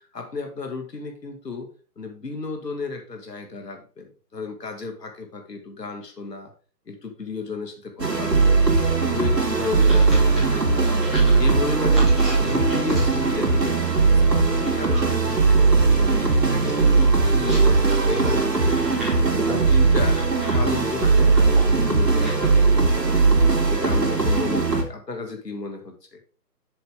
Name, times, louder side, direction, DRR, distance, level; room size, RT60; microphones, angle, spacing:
voice 1, 0.1-1.7 2.0-6.5 6.9-8.7 9.0-11.0 11.4-12.1 12.4-15.6 15.9-19.0 19.3-20.2 20.5-23.3 23.7-26.2, left 4 dB, 80° left, 4 dB, 2.5 m, -33 dB
sound 1, 8.0-24.8, right 4 dB, 90° right, 3.0 m, -19 dB
sound 2, 9.3-22.5, right 1 dB, ahead, 1.8 m, -38 dB
7.7 x 7.1 x 3.7 m, 0.39 s
figure-of-eight pair, 160°, 48 cm